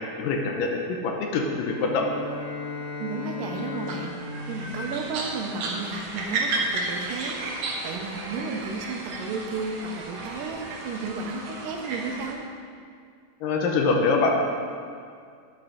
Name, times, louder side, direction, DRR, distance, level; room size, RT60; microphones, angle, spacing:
voice 1, 0.2-2.0 13.4-14.4, left 4 dB, 75° left, 2 dB, 2.4 m, -24 dB
Bowed string instrument, 1.5-5.9, left 4 dB, 50° left, 1.3 m, -37 dB
voice 2, 3.0-4.1 4.5-7.4 7.8-12.5, right 4 dB, 80° right, 3 dB, 2.3 m, -33 dB
sound 1, 3.5-12.3, right 3 dB, 65° right, 2.2 m, -33 dB
9.7 x 7.0 x 5.0 m, 2.2 s
omnidirectional pair, 4.1 m